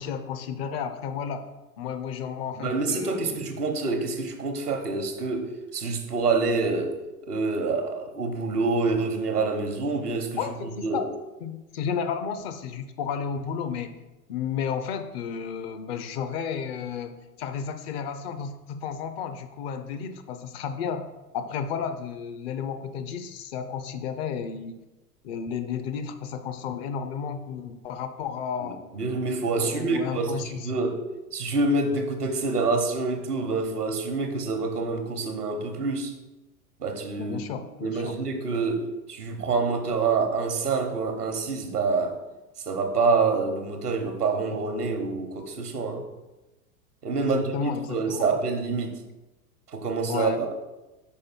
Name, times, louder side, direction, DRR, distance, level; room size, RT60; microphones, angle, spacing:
voice 1, 0.0-1.5 1.8-3.4 10.4-11.1 11.4-14.0 14.3-21.1 21.3-24.8 25.2-28.8 29.6-30.7 37.2-38.2 47.2-48.3 50.1-50.4, left 7 dB, 45° left, 9 dB, 0.6 m, -32 dB
voice 2, 2.6-7.0 7.3-11.1 28.6-31.0 31.3-36.1 36.8-37.4 37.8-42.2 42.6-46.1 47.0-49.0 49.7-50.5, right 4 dB, 85° right, 6 dB, 1.0 m, -27 dB
5.3 x 4.9 x 4.5 m, 1.0 s
figure-of-eight pair, 90°, 45 cm